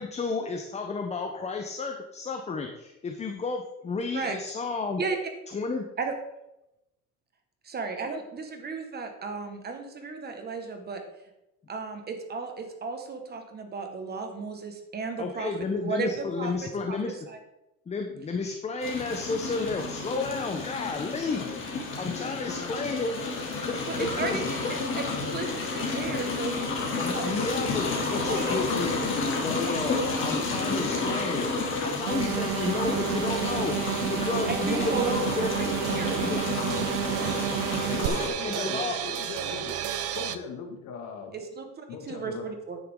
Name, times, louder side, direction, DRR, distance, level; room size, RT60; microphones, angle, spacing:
voice 1, 0.0-5.0 5.5-5.8 15.2-17.1 17.9-21.4 22.0-23.1 23.6-24.8 27.0-31.5 31.8-33.7 34.1-35.5 36.2-36.4 38.0-39.0, left 4 dB, 20° left, 4 dB, 0.8 m, -32 dB
voice 2, 7.6-11.0 11.7-15.5 15.8-17.0 17.3-17.4 23.9-24.4 25.0-25.1 25.3-27.8 28.3-28.6 34.5-35.1 35.6-35.7 35.9-36.2 41.3-42.8, right 4 dB, 30° right, 5 dB, 1.6 m, -34 dB
sound 1, 18.8-38.3, left 3 dB, 35° left, 3.0 m, -31 dB
voice 3, 22.1-22.9 36.0-36.6 37.9-39.8 40.1-41.4 41.9-42.5, left 5 dB, 60° left, 4 dB, 2.1 m, -39 dB
sound 2, 32.1-38.1, right 14 dB, 80° right, 0.7 m, -30 dB
sound 3, 34.7-40.4, right 10 dB, 45° right, 0.8 m, -35 dB
10.5 x 9.8 x 3.7 m, 0.90 s
cardioid pair, 140°, 34 cm